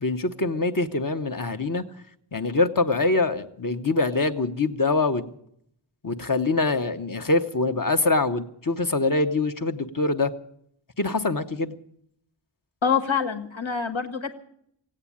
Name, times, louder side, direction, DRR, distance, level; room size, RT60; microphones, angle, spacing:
voice 1, 0.0-1.8 2.3-5.3 6.0-10.3 11.0-11.7, left 3 dB, 40° left, 7 dB, 1.1 m, -24 dB
voice 2, 12.8-14.3, left 6 dB, 70° left, 5 dB, 1.6 m, -25 dB
16.5 x 8.9 x 8.6 m, 0.70 s
wide cardioid pair, 45°, 48 cm